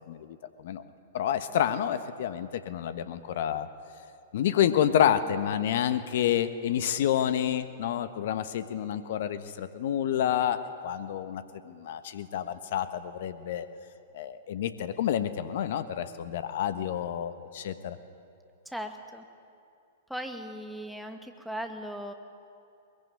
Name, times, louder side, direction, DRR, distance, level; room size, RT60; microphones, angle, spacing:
voice 1, 0.1-0.4 0.6-0.8 1.1-3.7 4.3-13.7 14.1-18.0, left 10 dB, 60° left, 11 dB, 1.3 m, -29 dB
voice 2, 18.7-19.2 20.1-22.1, equal, ahead, 4 dB, 2.4 m, -38 dB
22.5 x 22.0 x 9.8 m, 2.6 s
hypercardioid pair, 110°, 0 cm